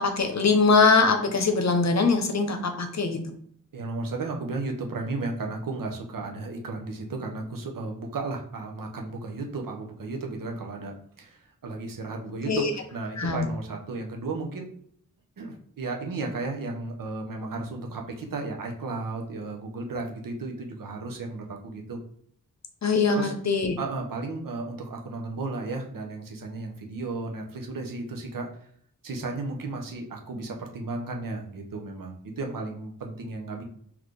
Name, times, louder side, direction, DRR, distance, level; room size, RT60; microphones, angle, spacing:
voice 1, 0.0-3.2 12.5-12.7 13.2-13.5 22.8-23.8, left 4 dB, 55° left, 6 dB, 0.8 m, -22 dB
voice 2, 3.7-14.7 15.4-22.0 23.1-23.3 23.8-28.5 29.0-33.6, right 3 dB, 85° right, 2 dB, 0.8 m, -34 dB
4.1 x 2.9 x 3.2 m, 0.63 s
cardioid pair, 45°, 33 cm